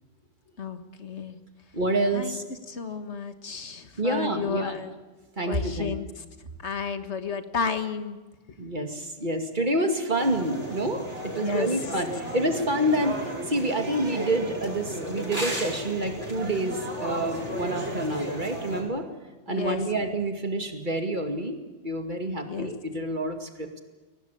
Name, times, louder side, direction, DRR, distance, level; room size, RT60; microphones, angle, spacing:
voice 1, 0.6-1.4 2.1-2.4 2.7-4.9 5.4-6.1 6.6-8.2 11.4-11.8 19.5-20.1 22.5-22.7, left 6 dB, 75° left, 8 dB, 1.8 m, -32 dB
voice 2, 1.7-2.4 4.0-4.8 5.4-5.9 8.6-19.1 19.5-21.6 21.8-23.8, right 1 dB, 45° right, 5 dB, 2.4 m, -28 dB
sound 1, 10.2-18.8, equal, 85° right, 5.5 m, -34 dB
23.5 x 18.0 x 8.6 m, 1.2 s
omnidirectional pair, 1.2 m